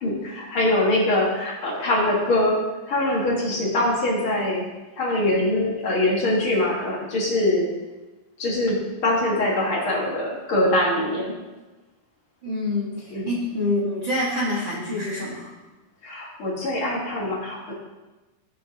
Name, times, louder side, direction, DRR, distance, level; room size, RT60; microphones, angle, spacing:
voice 1, 0.0-2.6 2.8-4.6 5.0-7.7 8.4-11.3 13.1-13.4 16.0-17.7, left 1 dB, 50° left, -3 dB, 1.7 m, -23 dB
voice 2, 12.4-15.5, left 1 dB, 70° right, -5 dB, 1.1 m, -26 dB
15.5 x 6.6 x 2.8 m, 1.2 s
omnidirectional pair, 4.4 m